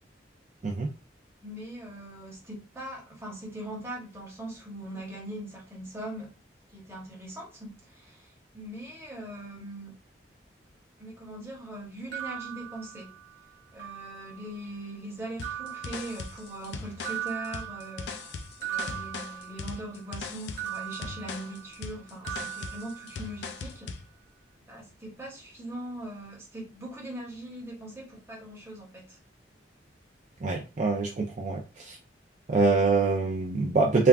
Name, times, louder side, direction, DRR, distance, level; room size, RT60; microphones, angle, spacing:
voice 1, 1.4-6.3 6.7-9.9 11.0-13.1 13.7-18.2 18.6-24.0 24.6-29.2, right 1 dB, 15° right, 1.0 m, -41 dB
sound 1, 12.1-13.4 13.8-14.6 15.4-16.7 17.0-20.0 20.6-21.9 22.2-23.6, right 11 dB, 75° right, 0.8 m, -39 dB
sound 2, 15.4-24.1, left 4 dB, 65° left, 0.4 m, -40 dB
voice 2, 30.4-32.0 32.5-34.1, right 4 dB, 40° right, 0.4 m, -24 dB
3.4 x 2.2 x 2.4 m
head